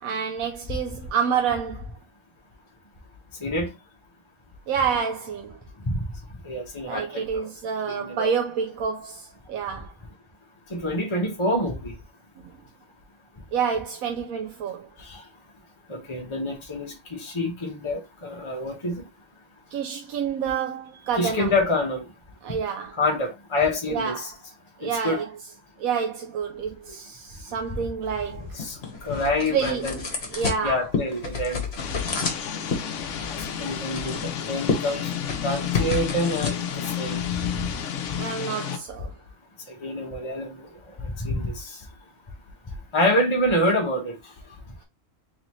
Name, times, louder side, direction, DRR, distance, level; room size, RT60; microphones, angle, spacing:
voice 1, 0.0-1.9 4.7-5.6 6.9-9.9 13.5-14.9 19.7-21.5 22.4-22.9 23.9-24.3 24.8-25.3 25.8-28.6 29.5-30.0 30.3-30.9 38.2-39.1, right 7 dB, 85° right, 1.1 m, -28 dB
voice 2, 6.4-7.5 7.9-8.3 10.7-11.9 15.0-15.2 15.9-19.0 21.2-22.0 22.9-24.3 24.8-25.2 28.6-30.0 30.6-31.6 33.3-35.1 35.4-37.2 39.8-40.7 41.0-41.8 42.9-44.2, left 1 dB, 25° left, 1.0 m, -27 dB
sound 1, 28.0-38.2, left 5 dB, 50° left, 1.3 m, -32 dB
sound 2, 31.8-38.8, left 9 dB, 65° left, 1.0 m, -31 dB
4.0 x 3.7 x 3.0 m
omnidirectional pair, 1.4 m